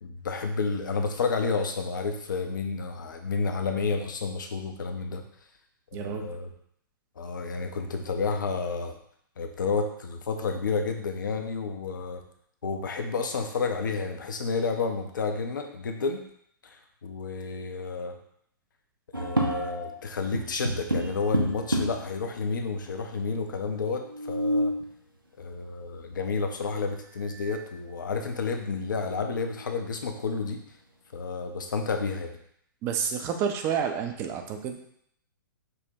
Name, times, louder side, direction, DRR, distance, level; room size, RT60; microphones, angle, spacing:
voice 1, 0.0-5.2 5.9-6.5 7.2-9.0 9.4-12.2 12.6-16.2 17.0-18.1 19.1-24.7 25.4-30.6 31.1-32.4, left 4 dB, 65° left, 5 dB, 0.5 m, -30 dB
voice 2, 5.9-6.4 32.8-34.9, right 7 dB, 25° right, 5 dB, 0.4 m, -30 dB
sound 1, 19.1-20.0 20.3-22.1 22.9-23.0 23.2-23.3 24.0-24.9 26.6-26.7 27.2-27.7 28.1-28.2 28.7-29.6, right 1 dB, 90° right, 0.6 m, -30 dB
5.5 x 2.1 x 2.6 m, 0.68 s
figure-of-eight pair, 115°, 11 cm